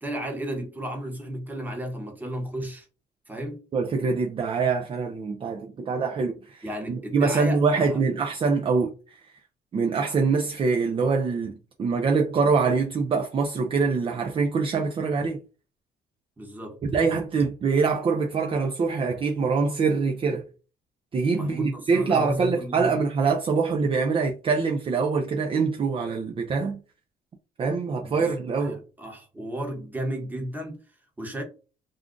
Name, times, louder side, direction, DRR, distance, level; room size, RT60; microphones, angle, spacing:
voice 1, 0.0-2.8 3.3-3.6 6.6-8.1 16.4-16.8 21.3-22.9 28.0-28.3 28.6-30.8 31.2-31.4, right 1 dB, 10° right, 1.0 m, -34 dB
voice 2, 3.7-9.2 9.7-15.4 16.8-20.4 21.1-26.8 27.6-28.8, right 4 dB, 30° right, 0.5 m, -24 dB
2.5 x 2.3 x 3.7 m
cardioid pair, 110°, 17 cm